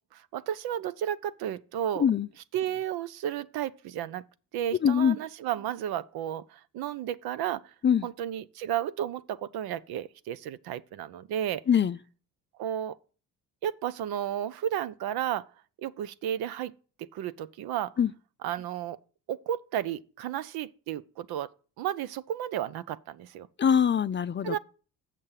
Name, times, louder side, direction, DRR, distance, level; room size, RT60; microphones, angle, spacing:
voice 1, 0.1-2.1 2.5-4.2 4.5-7.7 8.0-11.6 12.6-13.0 13.6-15.4 15.8-16.7 17.0-17.9 18.4-19.0 19.3-21.5 21.8-23.5 24.4-24.6, right 11 dB, 80° right, 0.7 m, -33 dB
voice 2, 4.8-5.2 7.8-8.1 11.7-12.0 18.0-18.1 23.6-24.6, left 8 dB, 30° left, 0.5 m, -23 dB
7.5 x 6.6 x 5.6 m
supercardioid pair, 75°, 37 cm